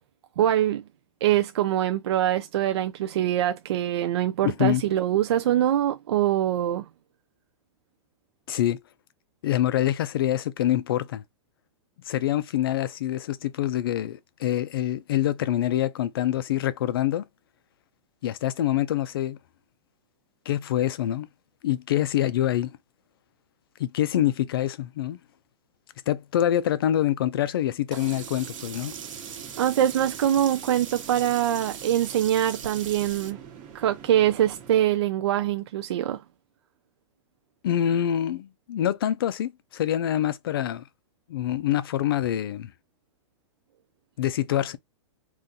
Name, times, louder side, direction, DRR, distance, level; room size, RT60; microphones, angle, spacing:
voice 1, 0.4-0.8 1.2-6.9 29.6-33.4 33.7-36.2, right 11 dB, 55° right, 0.4 m, -24 dB
voice 2, 4.4-4.8 8.5-8.8 9.4-11.2 12.1-17.2 18.2-19.4 20.5-21.3 21.6-22.7 23.8-25.2 26.1-28.9 37.6-40.8 41.3-42.7 44.2-44.8, left 12 dB, 50° left, 0.4 m, -25 dB
Sink (filling or washing), 27.9-33.3, right 7 dB, 80° right, 1.1 m, -40 dB
sound 1, 28.0-34.8, right 8 dB, 25° right, 1.0 m, -45 dB
3.7 x 2.5 x 2.7 m
supercardioid pair, 175°, 16 cm